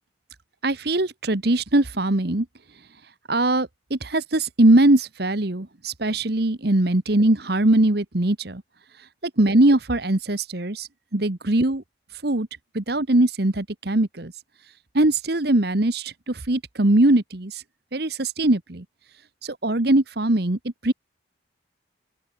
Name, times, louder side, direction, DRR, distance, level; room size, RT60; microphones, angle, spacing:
voice 1, 0.6-2.5 3.3-8.6 9.4-11.8 12.2-12.5 12.7-14.3 14.9-17.6 17.9-18.8 19.4-20.9, right 1 dB, 55° right, 1.4 m, -21 dB
open air
head